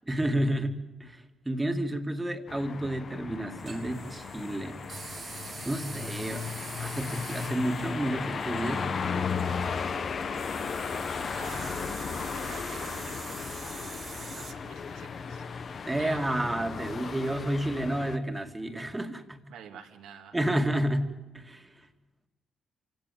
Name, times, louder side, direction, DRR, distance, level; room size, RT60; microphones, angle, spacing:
voice 1, 0.1-4.8 5.6-6.5 6.8-8.9 15.9-19.4 20.3-21.1 21.3-21.7, right 1 dB, 15° right, 6 dB, 2.2 m, -30 dB
sound 1, 2.5-18.2, left 5 dB, 50° left, 1.2 m, -35 dB
sound 2, 3.6-14.5, right 5 dB, 45° right, 1.7 m, -45 dB
voice 2, 11.0-13.5 14.1-15.4 16.0-16.2 19.5-20.4, right 7 dB, 85° right, 4 dB, 2.5 m, -49 dB
26.5 x 17.0 x 9.3 m, 1.1 s
cardioid pair, 90°, 0 cm